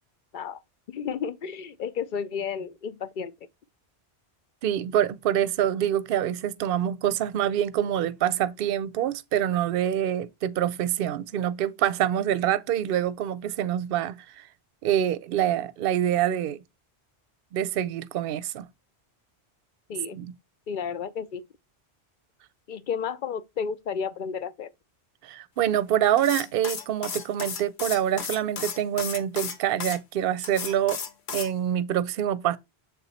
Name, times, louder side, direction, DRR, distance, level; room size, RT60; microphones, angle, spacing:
voice 1, 0.9-3.3 19.9-20.2 20.7-21.4 22.7-24.7, left 6 dB, 55° left, 0.6 m, -32 dB
voice 2, 4.6-14.4 14.8-16.6 17.5-18.7 20.1-20.3 25.2-31.0 31.3-32.6, right 11 dB, 65° right, 0.7 m, -26 dB
sound 1, 26.2-30.0 30.4-31.5, left 6 dB, 75° left, 1.2 m, -34 dB
7.3 x 4.0 x 4.1 m
omnidirectional pair, 1.1 m